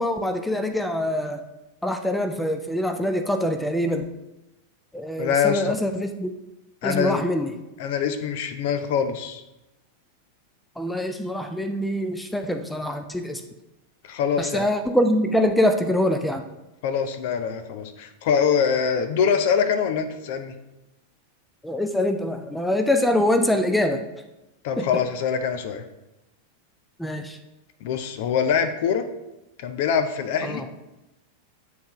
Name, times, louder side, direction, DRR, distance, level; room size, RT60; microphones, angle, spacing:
voice 1, 0.0-1.4 1.8-4.1 4.9-6.3 6.8-7.5 10.8-13.4 14.4-16.4 21.6-24.0 24.8-24.9 27.0-27.4 30.4-30.6, left 1 dB, 5° left, 6 dB, 0.5 m, -24 dB
voice 2, 5.2-5.8 6.8-7.2 7.8-9.4 14.0-14.6 16.8-20.5 24.6-25.8 27.8-29.1 29.6-30.6, left 7 dB, 50° left, 8 dB, 0.6 m, -24 dB
9.3 x 3.8 x 3.0 m, 0.97 s
figure-of-eight pair, 90°, 0 cm